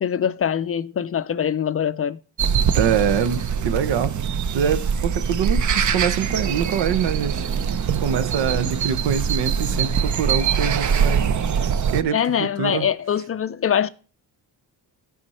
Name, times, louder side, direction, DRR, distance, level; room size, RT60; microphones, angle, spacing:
voice 1, 0.0-2.2 12.1-13.9, left 8 dB, 35° left, 0.4 m, -23 dB
sound 1, 2.4-12.0, right 7 dB, 45° right, 0.7 m, -23 dB
voice 2, 2.7-4.1 4.5-7.5 8.0-11.3 11.9-12.9, right 8 dB, 80° right, 0.9 m, -24 dB
12.0 x 5.2 x 4.2 m
cardioid pair, 95°, 41 cm